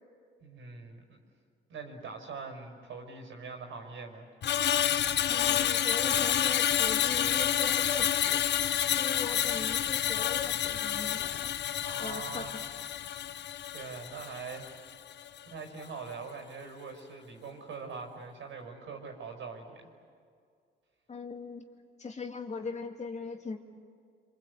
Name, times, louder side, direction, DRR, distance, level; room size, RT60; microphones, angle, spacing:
voice 1, 0.4-1.2 1.7-4.3 11.8-12.6 13.7-15.0 15.5-19.9, right 4 dB, 75° right, 4 dB, 5.3 m, -43 dB
Screech, 4.4-14.8 15.1-15.4, left 10 dB, 60° left, 0.8 m, -29 dB
voice 2, 5.3-8.4 9.0-11.5 12.0-12.6 21.1-21.6 22.0-23.6, left 4 dB, 35° left, 3 dB, 2.4 m, -40 dB
27.5 x 26.0 x 8.3 m, 2.2 s
cardioid pair, 90°, 20 cm